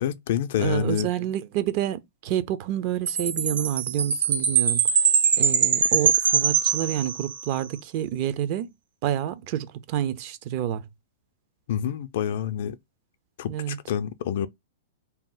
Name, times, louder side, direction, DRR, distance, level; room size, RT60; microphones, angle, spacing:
voice 1, 0.0-1.1 11.7-12.8 13.4-14.5, left 9 dB, 60° left, 0.4 m, -27 dB
voice 2, 0.6-4.8 5.4-8.7 9.0-10.9 13.5-13.8, right 11 dB, 45° right, 0.5 m, -28 dB
Chime, 3.1-7.6, right 7 dB, 85° right, 0.8 m, -22 dB
2.7 x 2.0 x 3.8 m
hypercardioid pair, 145°, 0 cm